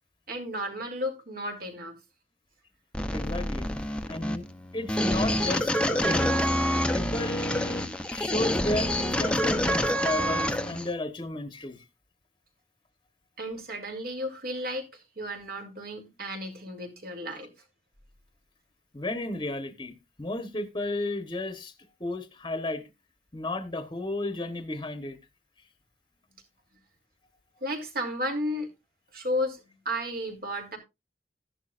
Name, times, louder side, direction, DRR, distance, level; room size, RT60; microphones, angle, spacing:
voice 1, 0.3-1.9 13.4-14.9 15.2-17.5 27.6-28.7 29.1-30.8, equal, 60° right, 2.9 m, -33 dB
sound 1, 2.9-10.9, equal, 5° left, 0.8 m, -27 dB
voice 2, 3.1-3.7 4.1-4.5 4.7-6.5 6.9-11.8 18.9-19.9 20.2-21.7 22.0-22.8 23.3-25.2, left 2 dB, 25° left, 1.1 m, -33 dB
13.5 x 11.0 x 2.5 m
head